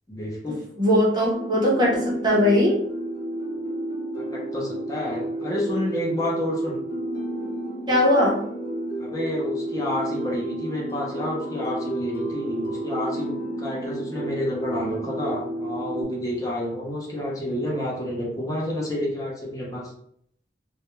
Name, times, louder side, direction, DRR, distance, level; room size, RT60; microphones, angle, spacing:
voice 1, 0.1-0.6 4.2-6.8 9.0-19.9, left 1 dB, 20° left, -4 dB, 0.6 m, -29 dB
voice 2, 0.8-2.8 7.9-8.4, left 1 dB, 25° right, -4 dB, 0.7 m, -20 dB
sound 1, 1.3-16.0, right 1 dB, 55° left, 0.5 m, -31 dB
2.4 x 2.1 x 2.9 m, 0.69 s
head